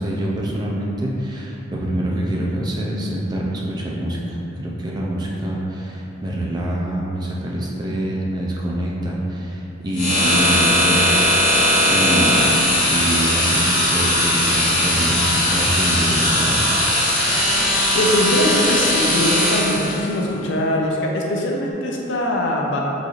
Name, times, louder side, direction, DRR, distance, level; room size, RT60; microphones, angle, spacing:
voice 1, 0.0-11.1 11.7-16.6, right 1 dB, 20° right, -3 dB, 0.4 m, -25 dB
sound 1, 9.9-20.1, left 1 dB, 40° left, 1.0 m, -18 dB
voice 2, 17.6-22.8, left 1 dB, 70° left, -1 dB, 0.5 m, -22 dB
3.9 x 3.1 x 2.4 m, 2.9 s
head